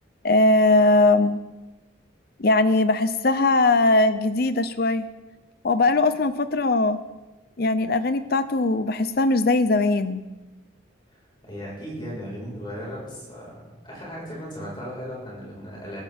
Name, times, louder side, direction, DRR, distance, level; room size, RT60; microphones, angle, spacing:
voice 1, 0.2-1.4 2.4-5.1 5.6-7.0 7.6-10.2, left 2 dB, 50° left, 11 dB, 0.6 m, -20 dB
voice 2, 11.1-13.5 13.8-16.0, equal, 25° left, -4 dB, 5.0 m, -36 dB
20.5 x 15.0 x 3.6 m, 1.2 s
head